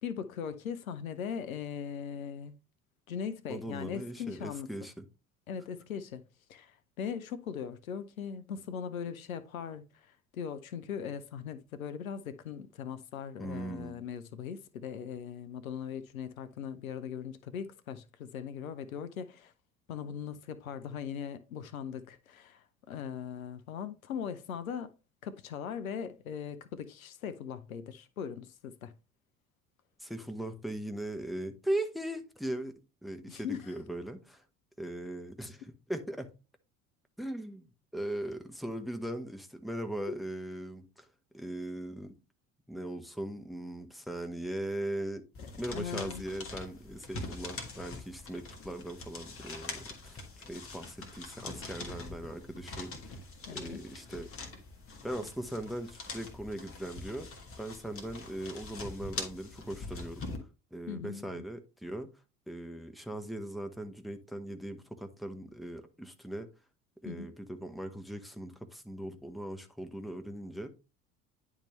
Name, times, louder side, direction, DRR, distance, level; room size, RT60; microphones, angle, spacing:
voice 1, 0.0-2.6 3.1-4.7 5.5-6.2 6.5-19.5 19.9-24.9 25.2-28.9 33.3-33.7 40.1-40.2 45.4-46.2 53.5-53.8 60.9-61.4 67.0-67.3, left 7 dB, 80° left, 0.6 m, -40 dB
voice 2, 3.5-5.0 13.4-14.0 30.0-32.7 33.0-34.4 34.8-36.3 37.2-41.1 41.3-42.2 42.7-45.2 45.6-53.2 53.5-54.3 55.0-57.3 57.6-60.3 60.7-62.1 62.5-66.5 67.0-70.7, right 1 dB, ahead, 0.9 m, -39 dB
sound 1, 45.3-60.4, left 3 dB, 30° left, 1.7 m, -44 dB
10.0 x 3.6 x 3.1 m
figure-of-eight pair, 65°, 41 cm